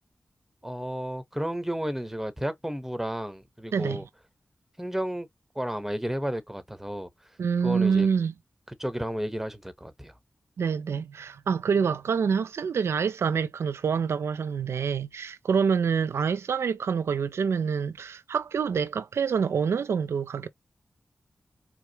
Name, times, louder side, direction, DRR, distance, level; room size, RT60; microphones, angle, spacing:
voice 1, 0.6-4.1 4.8-5.3 5.5-7.1 7.6-8.1 8.8-10.1, equal, 5° right, 1.0 m, -32 dB
voice 2, 7.4-8.3 10.6-20.5, right 6 dB, 85° right, 0.3 m, -26 dB
4.8 x 2.0 x 2.8 m
cardioid pair, 40°, 4 cm